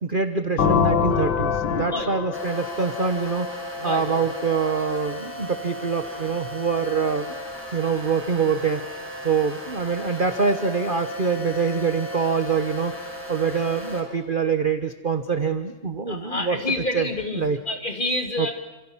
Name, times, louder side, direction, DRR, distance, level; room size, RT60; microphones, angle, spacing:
voice 1, 0.0-3.5 3.8-7.3 7.7-8.8 9.2-16.6 16.9-17.1 17.3-17.6 18.4-18.5, right 5 dB, 30° right, 8 dB, 1.1 m, -25 dB
sound 1, 0.6-4.3, left 7 dB, 80° left, 2.1 m, -25 dB
voice 2, 1.9-2.2 3.8-4.3 16.1-18.5, left 2 dB, 25° left, 4 dB, 3.1 m, -28 dB
sound 2, 2.3-14.0, equal, 5° right, 6.4 m, -35 dB
28.0 x 27.5 x 7.4 m, 1.1 s
omnidirectional pair, 2.1 m